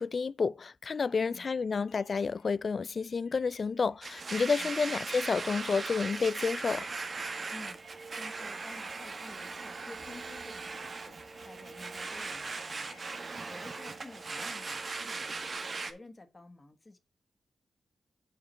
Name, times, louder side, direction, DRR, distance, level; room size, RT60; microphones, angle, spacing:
voice 1, 0.0-6.9, left 5 dB, 55° left, 0.3 m, -30 dB
sound 1, 0.9-15.5, left 5 dB, 75° left, 2.6 m, -64 dB
voice 2, 1.2-1.9 4.6-5.0 7.5-11.2 11.4-15.4 15.9-17.0, left 2 dB, 35° left, 1.7 m, -52 dB
Domestic sounds home sounds, 4.0-15.9, right 4 dB, 55° right, 1.0 m, -39 dB
7.0 x 4.8 x 4.4 m
supercardioid pair, 40°, 0 cm